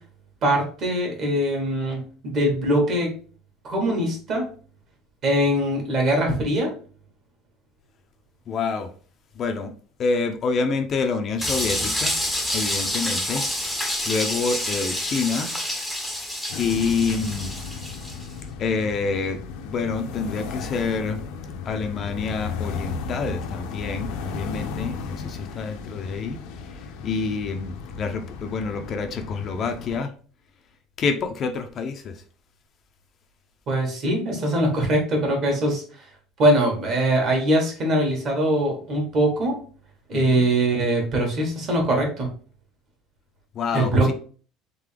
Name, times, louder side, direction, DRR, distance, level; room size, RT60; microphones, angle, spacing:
voice 1, 0.4-3.1 3.6-4.4 5.2-6.7 33.7-35.8 36.4-39.5 40.1-42.3 43.7-44.1, right 1 dB, 40° right, 1 dB, 1.6 m, -22 dB
voice 2, 8.5-8.9 9.4-9.7 10.0-12.1 12.5-13.5 14.1-15.5 16.6-17.5 18.6-21.2 21.7-30.1 31.0-32.2 40.3-40.4 43.5-44.1, left 4 dB, 35° left, 5 dB, 0.5 m, -27 dB
sound 1, 11.4-18.3, left 1 dB, ahead, 0.7 m, -28 dB
sound 2, 16.5-30.0, left 5 dB, 75° left, 0.7 m, -35 dB
3.8 x 3.7 x 3.3 m, 0.40 s
cardioid pair, 160°, 0 cm